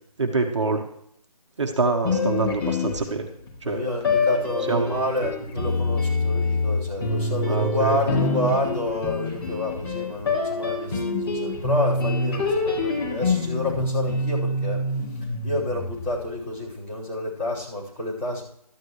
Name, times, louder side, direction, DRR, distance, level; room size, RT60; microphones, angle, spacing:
voice 1, 0.2-0.9 1.6-3.2 3.6-3.8 4.6-5.0 7.5-8.0, right 3 dB, 50° right, 2 dB, 1.5 m, -25 dB
sound 1, 2.0-3.5 4.0-16.3, left 3 dB, 45° left, 5.3 m, -26 dB
voice 2, 3.6-14.8 15.4-18.4, left 1 dB, 20° left, -10 dB, 5.0 m, -29 dB
14.0 x 12.5 x 3.2 m, 0.70 s
figure-of-eight pair, 170°, 20 cm